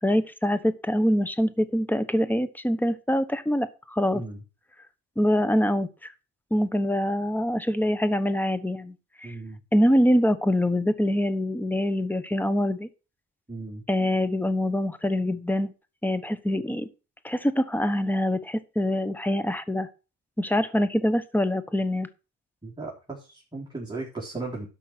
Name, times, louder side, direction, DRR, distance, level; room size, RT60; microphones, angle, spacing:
voice 1, 0.0-4.2 5.2-6.1 6.5-9.3 9.7-12.9 13.9-15.7 16.0-16.9 17.2-19.9 20.4-22.1, equal, 5° left, 13 dB, 1.1 m, -24 dB
voice 2, 9.2-9.6 13.5-13.8 22.6-24.7, right 3 dB, 15° right, -4 dB, 3.9 m, -36 dB
12.0 x 5.5 x 6.1 m, 0.33 s
cardioid pair, 90°, 30 cm